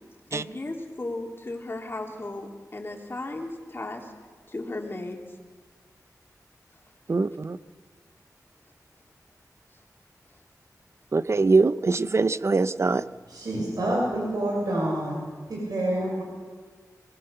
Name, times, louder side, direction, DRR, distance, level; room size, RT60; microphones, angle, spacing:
voice 1, 0.3-4.1 4.5-5.2, left 2 dB, 35° left, 1 dB, 3.1 m, -35 dB
voice 2, 7.1-7.6 11.1-13.0, right 3 dB, 45° right, 15 dB, 0.6 m, -22 dB
voice 3, 13.3-15.2 15.5-16.2, right 1 dB, 85° right, -3 dB, 6.5 m, -27 dB
22.5 x 20.5 x 6.8 m, 1.5 s
wide cardioid pair, 100°, 6 cm